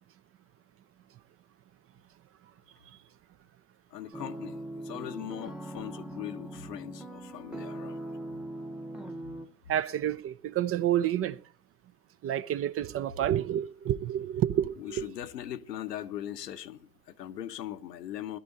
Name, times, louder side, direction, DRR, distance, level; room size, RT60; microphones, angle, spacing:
voice 1, 3.9-8.0 14.8-18.4, left 11 dB, 75° left, 1.1 m, -40 dB
sound 1, 4.1-9.5, right 1 dB, ahead, 1.1 m, -40 dB
voice 2, 9.7-11.4 12.2-15.1, right 11 dB, 30° right, 0.6 m, -29 dB
21.0 x 12.5 x 2.7 m
figure-of-eight pair, 75°, 49 cm